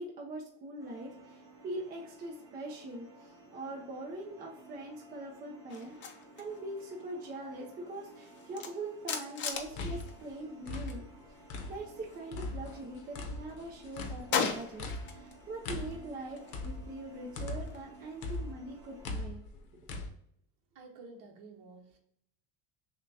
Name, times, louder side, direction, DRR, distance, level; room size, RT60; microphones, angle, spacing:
voice 1, 0.0-11.0 11.7-19.4, right 2 dB, 25° right, -1 dB, 0.5 m, -42 dB
sound 1, 0.8-19.1, right 2 dB, 10° right, 1.0 m, -56 dB
sound 2, 5.7-11.0 11.3-12.9 13.3-15.4 15.7-18.5, left 6 dB, 30° left, 0.5 m, -40 dB
sound 3, 9.5-12.0 12.3-17.9 18.2-20.1, left 2 dB, 90° left, 0.9 m, -40 dB
voice 2, 20.7-22.0, right 3 dB, 60° right, 0 dB, 1.0 m, -51 dB
6.4 x 2.3 x 2.6 m, 0.74 s
cardioid pair, 165°, 37 cm